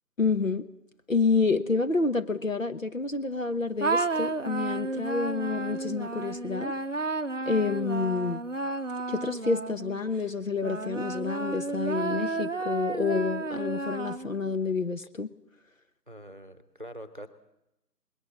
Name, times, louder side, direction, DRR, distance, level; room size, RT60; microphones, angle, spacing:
voice 1, 0.2-0.7 1.1-6.7 7.5-8.4 9.1-15.3, left 4 dB, 50° left, 9 dB, 1.1 m, -28 dB
sound 1, 3.8-10.0 10.6-14.5, right 3 dB, 50° right, 0.7 m, -32 dB
voice 2, 16.1-17.3, equal, 30° right, 11 dB, 1.0 m, -44 dB
20.0 x 18.5 x 7.4 m, 0.88 s
figure-of-eight pair, 170°, 50 cm